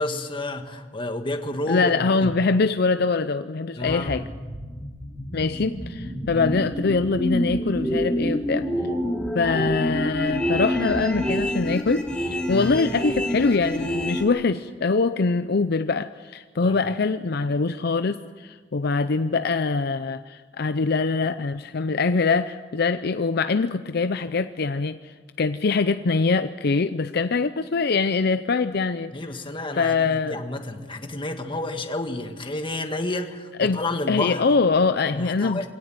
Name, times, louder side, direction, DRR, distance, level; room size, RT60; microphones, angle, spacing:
voice 1, 0.0-2.3 3.8-4.2 6.3-6.6 12.5-12.8 16.6-16.8 29.1-34.4 35.1-35.7, left 2 dB, 30° left, 6 dB, 1.6 m, -30 dB
voice 2, 1.7-4.2 5.3-8.7 9.3-29.1 29.7-30.4 33.6-33.8 34.1-35.7, left 4 dB, 60° left, 11 dB, 0.6 m, -23 dB
sound 1, 3.9-14.2, equal, 5° left, 2.7 m, -27 dB
23.5 x 17.5 x 7.6 m, 1.4 s
head